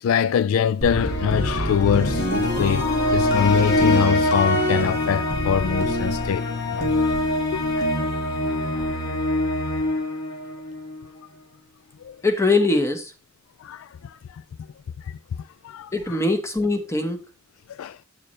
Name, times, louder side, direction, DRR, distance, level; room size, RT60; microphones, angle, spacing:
voice 1, 0.0-2.3 2.6-6.9 7.5-7.9 12.0-12.2 13.6-14.2 15.1-15.2 15.6-16.2 17.7-18.0, left 7 dB, 70° left, 0.3 m, -24 dB
sound 1, 0.8-11.0, left 1 dB, 55° left, 1.8 m, -23 dB
voice 2, 12.2-13.1 15.9-17.2, left 2 dB, 15° left, 1.1 m, -22 dB
8.6 x 6.8 x 3.1 m
head